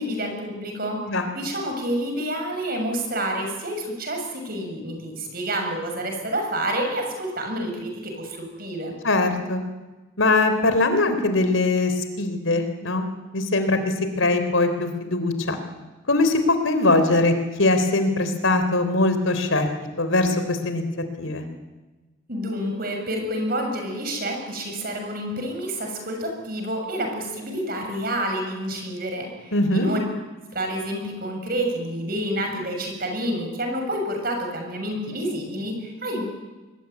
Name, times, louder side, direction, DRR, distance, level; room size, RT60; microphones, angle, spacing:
voice 1, 0.0-1.0 1.4-9.0 22.3-30.0 30.5-36.2, right 1 dB, 50° right, 4 dB, 7.0 m, -28 dB
voice 2, 9.0-9.6 10.2-13.1 13.3-15.6 16.1-19.7 20.0-20.8 21.2-21.5 29.5-29.9, left 2 dB, 85° left, 8 dB, 3.7 m, -21 dB
25.0 x 21.0 x 9.5 m, 1.2 s
head